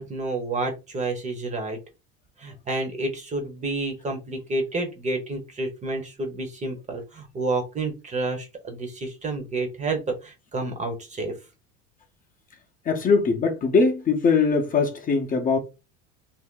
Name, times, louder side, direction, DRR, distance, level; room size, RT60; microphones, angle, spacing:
voice 1, 0.0-1.8 2.4-11.4, right 2 dB, 25° right, 0.9 m, -29 dB
voice 2, 12.8-15.6, left 4 dB, 30° left, 0.8 m, -21 dB
2.6 x 2.1 x 3.7 m
supercardioid pair, 105°, 30 cm